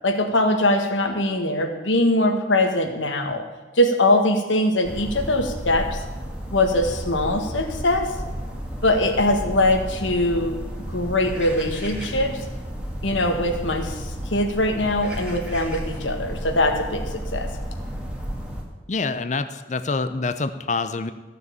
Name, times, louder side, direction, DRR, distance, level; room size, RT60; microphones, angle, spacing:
voice 1, 0.0-3.4 3.8-6.0 6.5-8.1 8.8-10.6 10.9-12.4 13.0-14.0 14.3-17.5, left 1 dB, 85° left, 5 dB, 1.8 m, -22 dB
sound 1, 4.8-18.6, equal, 5° right, 1.8 m, -32 dB
voice 2, 18.9-21.1, left 3 dB, 40° left, 11 dB, 0.6 m, -26 dB
14.5 x 6.8 x 8.8 m, 1.2 s
head